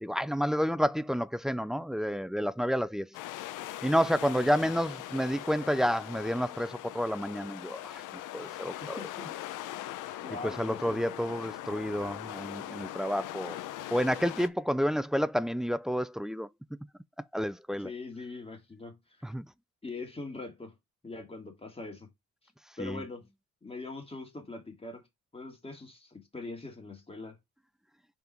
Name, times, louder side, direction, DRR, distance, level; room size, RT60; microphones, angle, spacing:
voice 1, 0.0-3.1 3.8-8.0 8.3-9.0 10.4-13.6 13.9-16.5 17.3-17.9 19.2-19.5 22.8-23.0, equal, ahead, 0.3 m, -30 dB
sound 1, 3.1-14.5, left 13 dB, 85° left, 0.7 m, -41 dB
voice 2, 8.8-9.3 10.2-11.0 17.8-19.3 19.8-20.7 21.0-22.1 22.8-23.3 23.6-25.1 25.3-27.4, left 3 dB, 20° left, 2.3 m, -42 dB
5.6 x 4.0 x 4.4 m
cardioid pair, 90°, 30 cm